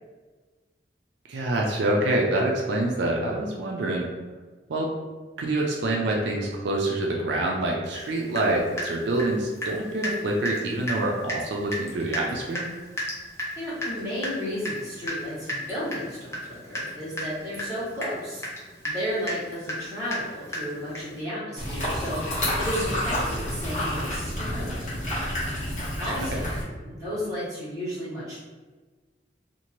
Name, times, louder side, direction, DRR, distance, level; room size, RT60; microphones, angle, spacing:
voice 1, 1.3-4.1 4.7-4.9 5.4-12.7 26.3-26.4, right 1 dB, 80° right, -1 dB, 0.4 m, -26 dB
Water tap faucet / Drip, 7.9-8.1 8.3-9.8 10.0-10.2 10.4-10.6 10.9-11.0 11.3-11.4 11.7-21.2, equal, 15° left, 0.5 m, -33 dB
voice 2, 13.6-18.4 18.8-24.9 26.0-26.5 26.8-28.5, equal, 20° right, -11 dB, 1.3 m, -33 dB
sound 1, 21.6-26.6, equal, 40° left, 1.1 m, -29 dB
2.8 x 2.5 x 2.9 m, 1.3 s
head